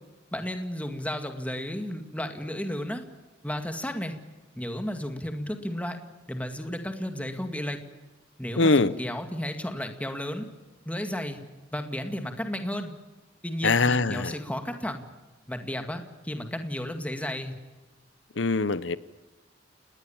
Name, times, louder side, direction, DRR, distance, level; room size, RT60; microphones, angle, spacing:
voice 1, 0.3-3.0 3.4-4.2 4.6-6.0 6.3-7.8 8.4-10.5 10.9-11.4 11.7-12.9 13.4-15.0 15.5-17.6, left 1 dB, 10° left, 2.1 m, -33 dB
voice 2, 8.6-8.9 13.6-14.3 18.4-19.0, left 3 dB, 70° left, 0.9 m, -22 dB
30.0 x 19.5 x 7.3 m
head